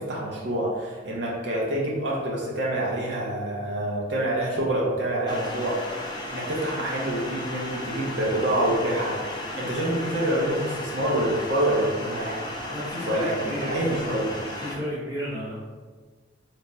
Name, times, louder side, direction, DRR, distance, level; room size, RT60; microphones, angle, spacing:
voice 1, 0.0-5.8 6.3-12.4 13.0-14.3, right 1 dB, 65° right, -4 dB, 0.6 m, -27 dB
sound 1, 5.3-14.7, left 1 dB, 25° left, 0.5 m, -35 dB
voice 2, 12.7-14.1 14.6-15.6, equal, 20° right, -7 dB, 0.9 m, -33 dB
3.3 x 2.1 x 3.9 m, 1.4 s
head